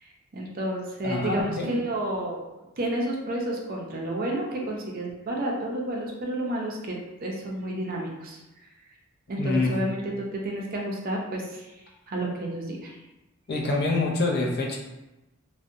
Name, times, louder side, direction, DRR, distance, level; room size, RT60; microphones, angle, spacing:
voice 1, 0.0-2.4 2.8-8.4 9.3-11.8 12.1-13.0, right 1 dB, 40° right, -1 dB, 0.4 m, -31 dB
voice 2, 1.0-1.7 9.4-9.7 13.5-14.8, left 2 dB, 50° left, -1 dB, 0.4 m, -26 dB
2.6 x 2.1 x 2.5 m, 0.99 s
head